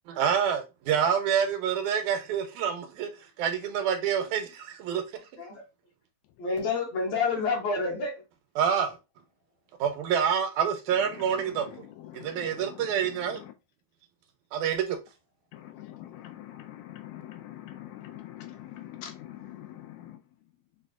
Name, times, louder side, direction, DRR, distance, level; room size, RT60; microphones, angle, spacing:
voice 1, 0.2-3.1 3.4-5.0 8.6-9.0 9.8-11.9 12.1-13.4 14.5-15.0, right 8 dB, 85° right, 2.1 m, -27 dB
voice 2, 6.4-8.1, left 4 dB, 65° left, 1.9 m, -28 dB
voice 3, 11.0-13.5 15.5-20.2, left 12 dB, 80° left, 1.8 m, -44 dB
6.6 x 2.3 x 2.4 m
omnidirectional pair, 3.4 m